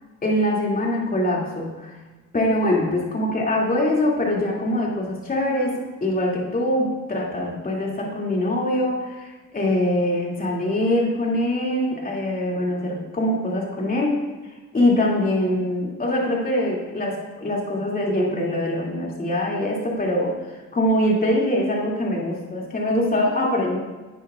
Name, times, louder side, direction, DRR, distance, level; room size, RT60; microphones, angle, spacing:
voice 1, 0.2-2.0 2.3-14.2 14.4-23.8, left 1 dB, 30° left, -3 dB, 2.6 m, -23 dB
10.5 x 9.7 x 2.5 m, 1.2 s
cardioid pair, 90°, 30 cm